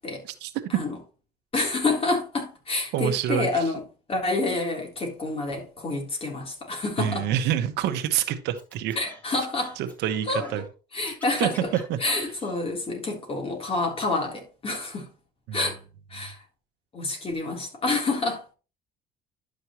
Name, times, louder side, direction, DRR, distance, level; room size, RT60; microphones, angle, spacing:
voice 1, 1.5-3.8 4.1-7.3 9.0-9.8 10.3-10.4 10.9-11.7 12.0-15.1 15.5-15.8 16.1-16.4 16.9-18.4, left 2 dB, 35° left, 3.5 m, -28 dB
voice 2, 2.9-3.7 7.0-9.0 9.8-10.6 11.4-11.5 11.9-12.0 15.5-15.6, right 10 dB, 85° right, 1.2 m, -27 dB
Scratching (performance technique), 8.6-10.7 11.0-12.6, left 1 dB, 10° left, 3.1 m, -45 dB
11.0 x 6.6 x 3.0 m
cardioid pair, 110°, 17 cm